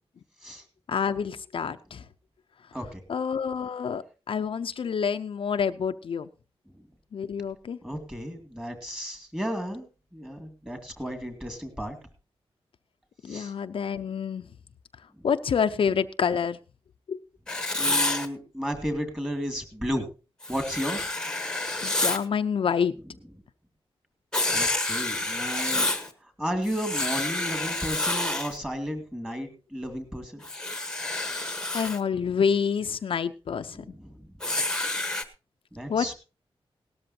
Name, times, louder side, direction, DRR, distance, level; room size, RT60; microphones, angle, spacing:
voice 1, 0.9-2.0 3.1-6.3 7.1-7.8 13.2-14.4 15.2-16.6 17.1-17.2 21.8-22.9 31.4-33.8 35.9-36.1, left 6 dB, 65° left, 8 dB, 0.6 m, -28 dB
voice 2, 7.8-9.8 10.1-12.0 13.3-13.5 17.8-20.0 20.5-21.0 24.5-25.9 26.4-30.4 33.7-34.2 35.7-36.1, equal, 10° right, 6 dB, 2.4 m, -33 dB
Writing, 17.5-18.3 20.4-22.2 24.3-26.1 26.7-28.6 30.4-32.0 34.4-35.2, left 2 dB, 5° left, 1.2 m, -28 dB
18.5 x 13.0 x 2.8 m, 0.32 s
wide cardioid pair, 180°, 10 cm